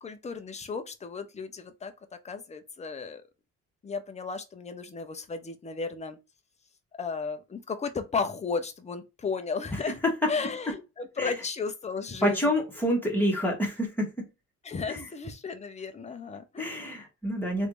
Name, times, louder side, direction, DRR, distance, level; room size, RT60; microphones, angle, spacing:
voice 1, 0.0-1.9 2.2-3.2 3.8-6.2 7.0-10.0 10.3-12.5 14.6-17.0, left 5 dB, 20° left, 0.6 m, -34 dB
voice 2, 12.2-14.3 14.9-15.0 16.6-17.7, equal, 5° left, 1.6 m, -28 dB
3.2 x 2.6 x 3.1 m
cardioid pair, 90°, 30 cm